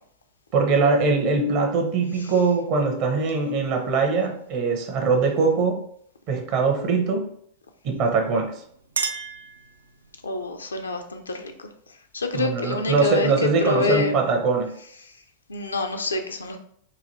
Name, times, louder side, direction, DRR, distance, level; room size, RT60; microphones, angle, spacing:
voice 1, 0.5-5.8 6.3-7.3 7.8-8.6 12.3-14.7, right 4 dB, 45° right, 3 dB, 0.8 m, -22 dB
Chink clink, 8.4-10.2, right 4 dB, 75° right, 0.4 m, -32 dB
voice 2, 10.2-11.7 12.1-14.2 15.5-16.6, left 3 dB, 75° left, 5 dB, 0.4 m, -27 dB
3.9 x 2.6 x 2.7 m, 0.66 s
figure-of-eight pair, 90°, 0 cm